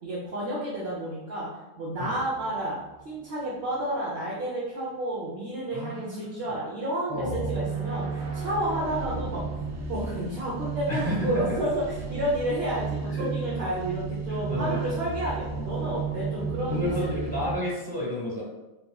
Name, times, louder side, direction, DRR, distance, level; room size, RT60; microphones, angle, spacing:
voice 1, 0.0-9.5 9.9-11.8 12.1-17.1, right 1 dB, 55° right, -6 dB, 1.2 m, -31 dB
sound 1, 1.9-3.2 7.1-17.5, right 4 dB, 75° right, 1.0 m, -33 dB
voice 2, 5.7-6.6 7.1-7.6 10.9-11.6 13.1-13.3 14.3-15.0 15.6-15.7 16.7-18.4, left 1 dB, 20° right, -5 dB, 1.3 m, -31 dB
5.4 x 3.9 x 2.4 m, 1.0 s
omnidirectional pair, 1.3 m